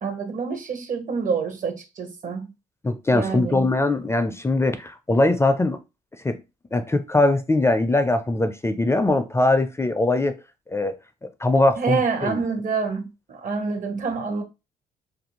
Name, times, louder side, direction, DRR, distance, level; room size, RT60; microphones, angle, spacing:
voice 1, 0.0-2.5 3.1-3.7 11.8-14.4, right 5 dB, 50° right, 0.8 m, -27 dB
voice 2, 2.8-5.8 6.2-6.4 6.7-10.3 10.7-11.0 11.4-12.4, left 2 dB, 15° left, 0.4 m, -21 dB
2.5 x 2.2 x 2.9 m
supercardioid pair, 70°, 17 cm